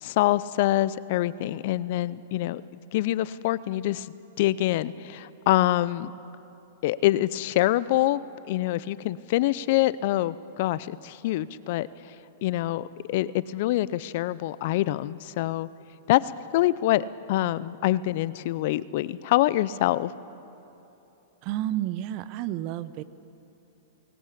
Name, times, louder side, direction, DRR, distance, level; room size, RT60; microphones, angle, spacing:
voice 1, 0.0-2.6 2.9-6.1 6.8-12.1 12.4-15.7 16.1-20.1, left 15 dB, 55° left, 18 dB, 0.5 m, -25 dB
voice 2, 21.4-23.0, right 13 dB, 45° right, 15 dB, 0.8 m, -30 dB
19.0 x 17.5 x 8.5 m, 2.9 s
hypercardioid pair, 115°, 0 cm